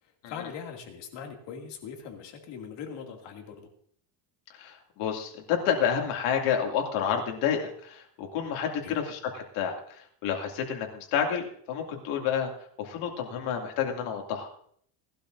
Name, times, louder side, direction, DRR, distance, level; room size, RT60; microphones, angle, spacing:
voice 1, 0.0-3.7 8.8-9.0, left 7 dB, 60° left, 2 dB, 2.5 m, -41 dB
voice 2, 4.6-9.7 10.2-12.5 12.8-14.5, left 8 dB, 90° left, 1 dB, 2.6 m, -29 dB
19.0 x 12.0 x 2.6 m, 0.63 s
cardioid pair, 155°, 47 cm